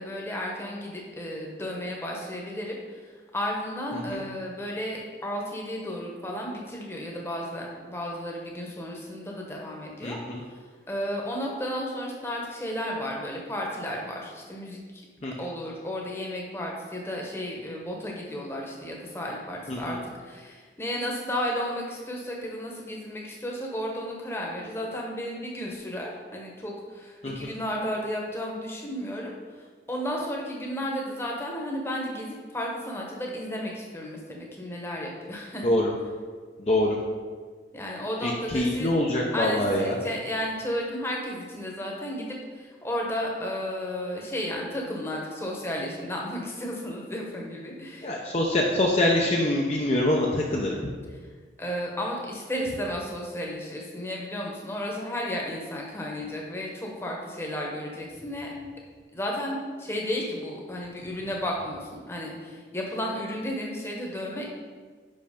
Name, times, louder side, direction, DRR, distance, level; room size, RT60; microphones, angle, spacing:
voice 1, 0.0-10.2 10.5-10.6 10.9-15.0 15.4-20.0 20.2-35.7 37.7-38.9 39.3-48.2 51.6-58.5 59.1-64.4, equal, 15° left, -1 dB, 1.0 m, -33 dB
voice 2, 10.0-10.4 15.2-15.3 19.7-20.0 27.2-27.5 35.6-35.9 36.6-37.0 38.2-40.0 48.0-50.8, left 1 dB, 35° left, -2 dB, 0.6 m, -25 dB
5.7 x 5.4 x 5.1 m, 1.5 s
head